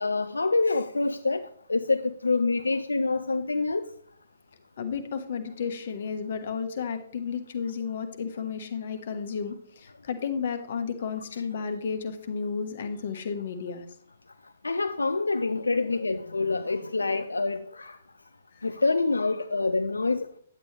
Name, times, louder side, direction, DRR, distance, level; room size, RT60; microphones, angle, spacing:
voice 1, 0.0-1.4 1.7-3.9 14.6-17.9 18.6-20.4, left 3 dB, 85° left, 0.4 m, -26 dB
voice 2, 4.8-13.8 18.5-18.6, left 6 dB, 60° left, 1.2 m, -32 dB
9.7 x 8.3 x 3.2 m
figure-of-eight pair, 125°, 0 cm